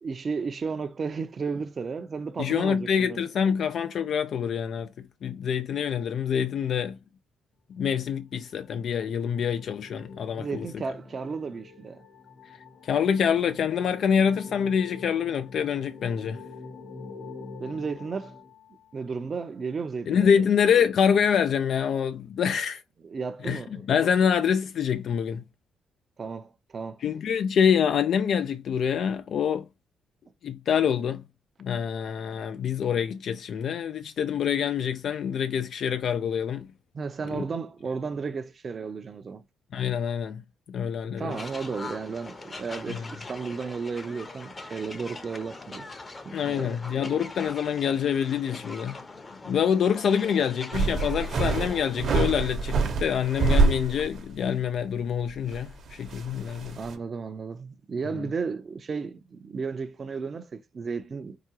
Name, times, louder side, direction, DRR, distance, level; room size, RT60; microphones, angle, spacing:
voice 1, 0.0-3.2 10.4-12.0 17.6-18.4 18.9-20.5 23.0-23.8 26.2-27.0 36.9-39.4 41.2-45.9 46.2-47.2 56.7-61.4, right 5 dB, 40° right, 0.6 m, -34 dB
voice 2, 2.4-7.0 7.7-10.7 12.8-16.4 20.1-22.8 23.4-23.6 23.9-25.4 27.0-29.7 30.4-31.2 31.6-36.7 37.3-37.4 39.7-40.4 40.7-41.4 42.9-43.1 46.3-49.0 49.4-56.8 58.1-58.2, left 7 dB, 65° left, 0.4 m, -26 dB
sound 1, 8.4-19.1, left 4 dB, 80° left, 2.4 m, -46 dB
sound 2, 41.3-52.5, left 3 dB, 25° left, 0.8 m, -42 dB
sound 3, 50.7-54.3 54.7-54.8 55.4-56.9, right 4 dB, 60° right, 0.9 m, -26 dB
4.8 x 2.3 x 2.8 m
cardioid pair, 90°, 0 cm